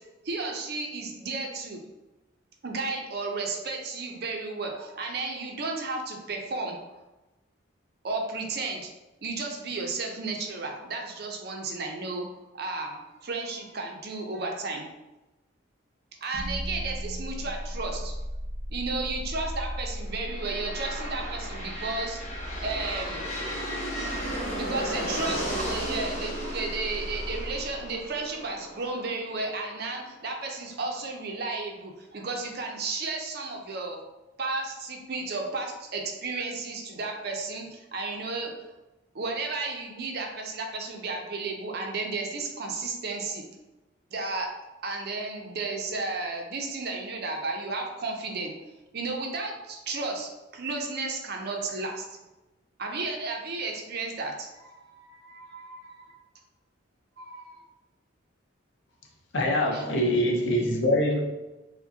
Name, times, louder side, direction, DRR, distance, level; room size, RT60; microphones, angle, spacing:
voice 1, 0.2-1.8 2.6-6.8 8.0-8.9 9.2-12.3 12.5-14.9 16.2-18.1 18.7-22.2 22.6-23.2 24.5-34.0 34.4-38.5 39.1-43.4 44.1-44.5 44.8-48.5 48.9-52.1 52.8-56.2 57.2-57.6 59.7-59.8, right 3 dB, 50° right, 0.5 m, -33 dB
sound 1, 16.3-28.4, equal, 5° right, 0.7 m, -37 dB
sound 2, 20.1-29.9, equal, 35° left, 0.9 m, -35 dB
voice 2, 59.3-61.2, left 1 dB, 65° left, 0.7 m, -24 dB
4.8 x 2.2 x 2.7 m
head